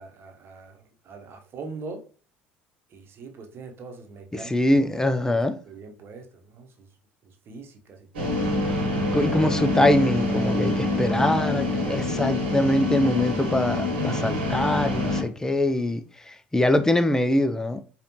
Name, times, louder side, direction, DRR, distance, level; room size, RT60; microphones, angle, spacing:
voice 1, 0.0-2.1 2.9-4.5 5.2-5.4 5.7-6.9 7.2-8.4 11.0-11.6, right 4 dB, 45° right, 1.0 m, -42 dB
voice 2, 4.4-5.6 9.1-17.8, left 1 dB, 10° left, 0.5 m, -23 dB
sound 1, 8.1-15.2, left 1 dB, 80° right, 1.2 m, -26 dB
5.0 x 2.5 x 3.0 m
hypercardioid pair, 65°, 6 cm